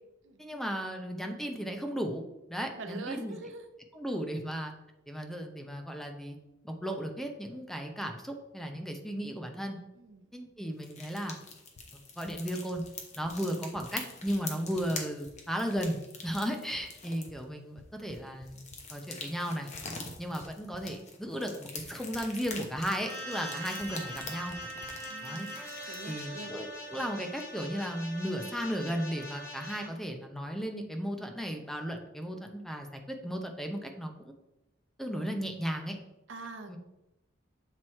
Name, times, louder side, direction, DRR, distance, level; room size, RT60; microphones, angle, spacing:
voice 1, 0.4-2.2 2.5-3.4 4.0-4.7 5.1-6.4 6.6-9.8 10.3-11.4 12.2-12.8 13.2-18.6 18.9-19.7 20.2-24.5 25.2-25.5 26.1-34.3 35.0-36.0 36.7-36.8, equal, ahead, 3 dB, 0.6 m, -35 dB
voice 2, 2.8-3.7 9.9-10.4 23.5-23.6 25.1-25.6 25.9-26.5 36.3-36.8, right 3 dB, 85° right, 7 dB, 0.7 m, -44 dB
sound 1, 10.8-17.4 18.1-26.1, left 4 dB, 40° left, 1.0 m, -45 dB
sound 2, 11.8-11.9 12.3-12.4 12.8-12.9 13.2-13.3 13.8-13.9 14.3-14.4 14.8-14.9 15.3-15.4 15.8-15.9 16.3-16.4 16.8-16.9 17.3-17.4 17.8-18.8 19.7-20.8 21.8-21.9 22.1-22.5 22.8-22.9 23.8-23.9 24.2-24.3 24.5-24.6 24.8-24.9, left 3 dB, 85° left, 0.6 m, -53 dB
sound 3, 23.0-29.9, equal, 20° left, 1.6 m, -42 dB
7.8 x 3.0 x 4.3 m, 0.93 s
head